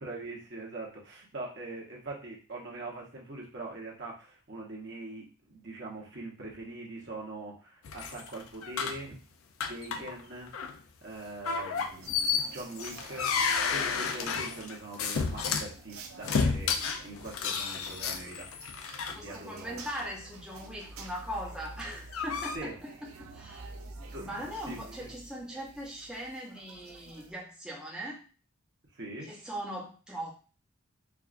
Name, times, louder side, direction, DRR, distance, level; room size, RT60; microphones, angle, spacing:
voice 1, 0.0-9.2 9.7-10.5 11.0-13.3 13.6-16.8 17.0-18.5 19.1-19.8 22.5-22.7 24.1-25.2 28.9-29.3, right 2 dB, 55° right, -2 dB, 1.1 m, -42 dB
sound 1, 7.8-9.1 9.6-10.2 10.5-10.7 11.5-15.7 16.2-19.1 19.8-20.0 21.7-22.6, left 5 dB, 80° left, 0.5 m, -31 dB
sound 2, 11.8-27.3, right 3 dB, 85° right, 0.6 m, -49 dB
voice 2, 19.1-23.7 24.2-28.3 29.2-30.3, equal, 5° right, -3 dB, 0.7 m, -40 dB
4.6 x 2.4 x 2.5 m, 0.36 s
head